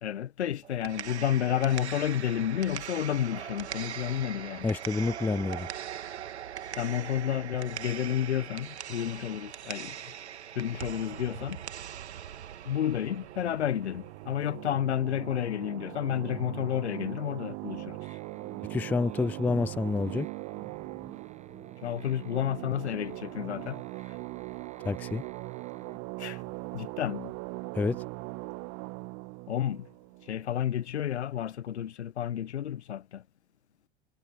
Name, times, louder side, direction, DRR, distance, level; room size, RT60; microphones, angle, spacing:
voice 1, 0.0-4.7 6.8-10.0 10.5-11.6 12.7-18.0 21.8-24.1 26.2-26.4 26.7-27.3 29.5-29.9 30.3-33.2, left 10 dB, 80° left, 1.1 m, -31 dB
sound 1, 0.6-14.6, right 10 dB, 75° right, 1.7 m, -41 dB
voice 2, 4.6-5.7 18.7-20.3 24.8-25.2 27.7-28.0, left 4 dB, 5° left, 0.3 m, -28 dB
sound 2, 12.9-31.0, right 28 dB, 50° right, 1.5 m, -41 dB
sound 3, 18.0-26.0, right 5 dB, 20° right, 7.4 m, -51 dB
figure-of-eight pair, 80°, 33 cm